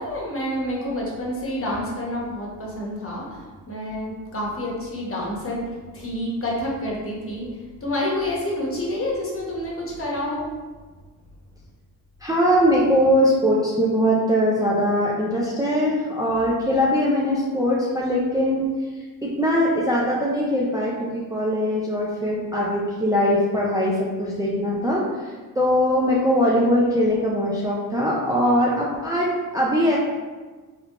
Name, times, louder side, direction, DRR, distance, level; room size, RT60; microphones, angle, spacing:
voice 1, 0.0-10.5, left 1 dB, 35° left, -3 dB, 1.1 m, -28 dB
voice 2, 12.2-18.7 19.2-30.0, equal, 10° right, -5 dB, 0.5 m, -21 dB
3.5 x 2.8 x 2.4 m, 1.3 s
cardioid pair, 75°, 38 cm